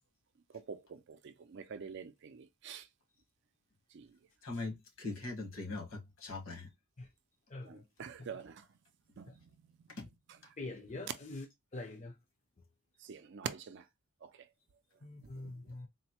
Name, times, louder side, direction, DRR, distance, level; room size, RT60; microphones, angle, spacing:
voice 1, 1.5-2.1 2.6-2.8 8.0-8.5 9.2-9.3 13.1-13.8, right 6 dB, 55° right, 0.4 m, -42 dB
voice 2, 4.4-5.9 6.2-6.7 10.0-10.1, left 3 dB, 65° left, 1.4 m, -40 dB
voice 3, 10.6-11.5 11.7-12.1 15.0-15.9, left 2 dB, 30° left, 0.6 m, -44 dB
4.0 x 2.1 x 2.8 m
head